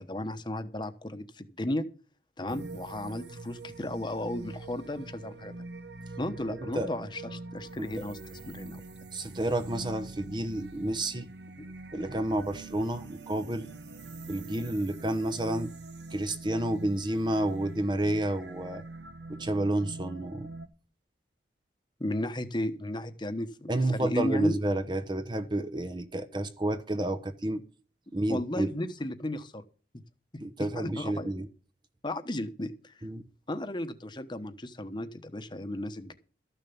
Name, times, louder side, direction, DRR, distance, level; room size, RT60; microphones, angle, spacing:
voice 1, 0.0-1.8 2.4-5.5 6.2-8.8 11.6-11.7 11.9-12.2 22.0-24.6 28.3-29.6 30.6-31.4 32.0-33.1 33.5-36.1, left 1 dB, 25° left, 1.1 m, -35 dB
sound 1, 2.5-20.7, right 2 dB, 75° right, 1.0 m, -44 dB
voice 2, 6.5-6.9 7.8-7.9 9.1-11.3 11.9-13.7 14.3-15.7 16.1-18.8 19.3-20.5 23.7-27.6 28.1-28.7 30.4-31.5 33.0-33.2, right 1 dB, 25° right, 0.8 m, -30 dB
13.5 x 6.8 x 7.1 m
head